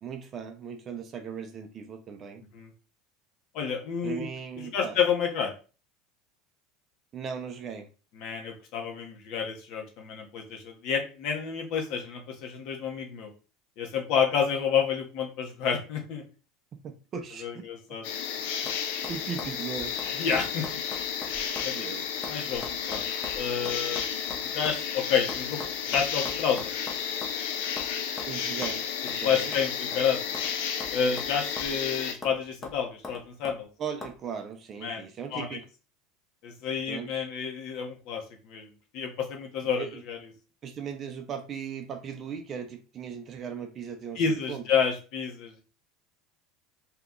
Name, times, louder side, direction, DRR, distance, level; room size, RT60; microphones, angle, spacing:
voice 1, 0.0-2.4 4.0-5.0 7.1-7.9 16.8-17.6 19.1-19.9 21.7-22.1 28.3-28.8 29.2-29.5 33.8-35.7 36.9-37.3 39.8-40.0 40.6-44.6, right 7 dB, 30° right, 0.4 m, -38 dB
voice 2, 3.5-4.2 4.7-5.5 8.2-13.3 13.8-16.2 17.4-18.0 20.1-20.6 21.6-21.8 22.3-23.1 23.4-24.0 24.4-26.7 29.2-30.2 30.9-33.7 34.8-35.0 35.3-35.5 36.4-38.7 38.9-40.2 44.2-45.6, left 7 dB, 55° left, 0.9 m, -29 dB
sound 1, 17.9-18.3 18.7-18.8 19.0-21.7 22.0-24.8 25.3-27.4 27.8-27.9 28.2-28.3 28.6-28.8 29.1-29.2 29.5-30.5 30.8-31.8 32.2-32.4 32.6-33.6 34.0-34.2, left 2 dB, 15° left, 0.7 m, -42 dB
sound 2, 18.0-32.1, left 7 dB, 75° left, 0.5 m, -32 dB
2.8 x 2.3 x 3.6 m
supercardioid pair, 150°, 0 cm